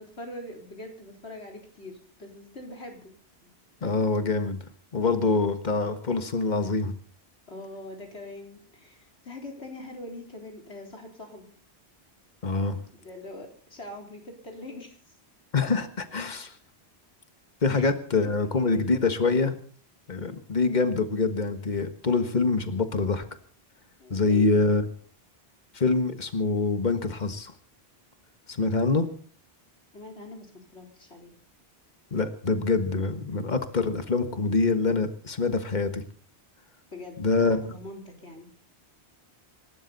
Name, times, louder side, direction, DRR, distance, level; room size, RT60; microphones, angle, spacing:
voice 1, 0.0-3.1 3.4-3.5 5.2-5.5 7.5-11.6 12.9-15.2 17.7-17.9 18.1-19.0 24.0-24.7 29.9-31.3 36.9-38.5, left 1 dB, 90° left, 1 dB, 4.2 m, -43 dB
voice 2, 3.8-4.6 4.9-6.9 12.4-12.8 15.5-16.5 17.6-19.6 20.1-23.2 24.1-24.8 25.7-27.5 28.5-29.1 32.1-36.0 37.2-37.7, left 3 dB, 45° left, 9 dB, 1.6 m, -25 dB
26.5 x 12.5 x 4.1 m, 0.43 s
omnidirectional pair, 1.1 m